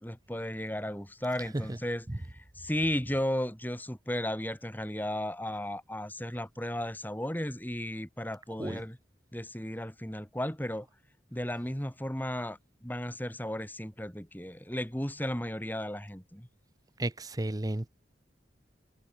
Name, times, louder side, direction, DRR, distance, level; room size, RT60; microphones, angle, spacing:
voice 1, 0.0-9.0 9.3-10.9 11.3-16.5, left 1 dB, 10° left, 3.3 m, -35 dB
voice 2, 17.0-17.9, right 1 dB, 20° right, 0.7 m, -33 dB
head